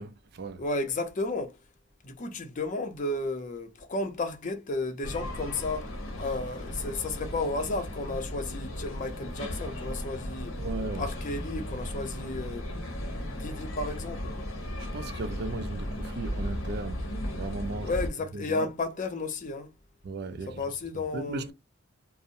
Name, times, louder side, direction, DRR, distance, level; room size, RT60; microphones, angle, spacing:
voice 1, 0.0-0.6 10.6-11.1 14.8-17.1 17.3-17.9 18.3-18.7 20.0-20.6 20.9-21.5, right 3 dB, 55° right, 0.4 m, -36 dB
voice 2, 0.6-1.6 2.0-5.9 6.2-10.5 11.0-14.3 17.8-19.7 20.5-21.5, left 2 dB, 40° left, 0.5 m, -33 dB
sound 1, 5.0-18.1, equal, 85° left, 0.8 m, -36 dB
2.6 x 2.0 x 2.5 m
head